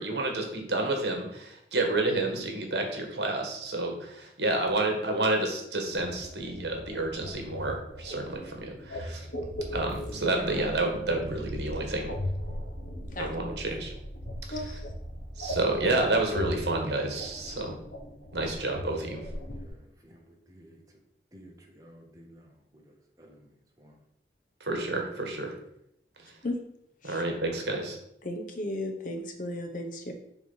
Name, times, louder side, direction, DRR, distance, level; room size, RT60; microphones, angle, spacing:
voice 1, 0.0-9.3 9.7-12.1 13.2-13.9 14.5-14.8 15.4-17.7 18.3-19.3 24.6-25.5 27.0-28.0, right 2 dB, 70° right, 2 dB, 1.5 m, -30 dB
sound 1, 5.9-19.7, left 1 dB, 85° left, 1.2 m, -39 dB
sound 2, 9.9-17.2, right 1 dB, ahead, 2.1 m, -43 dB
voice 2, 13.2-13.5 14.5-14.8 17.5-17.6 26.4-26.6 27.1-27.2 28.2-30.1, left 1 dB, 45° left, 5 dB, 0.9 m, -35 dB
voice 3, 19.3-20.8 21.3-23.5 23.8-23.9, equal, 20° right, 0 dB, 1.2 m, -54 dB
7.3 x 3.4 x 5.5 m, 0.76 s
head